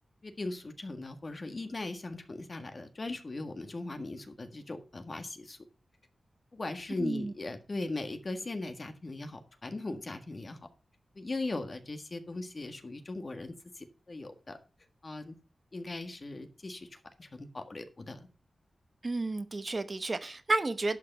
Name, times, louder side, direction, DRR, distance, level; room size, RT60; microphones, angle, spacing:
voice 1, 0.2-5.6 6.5-10.6 11.1-14.6 15.0-15.3 15.7-18.3, left 2 dB, 45° left, 1.6 m, -39 dB
voice 2, 7.0-7.3 19.0-21.0, right 3 dB, 40° right, 1.0 m, -31 dB
11.0 x 5.9 x 5.5 m
wide cardioid pair, 70°, 0 cm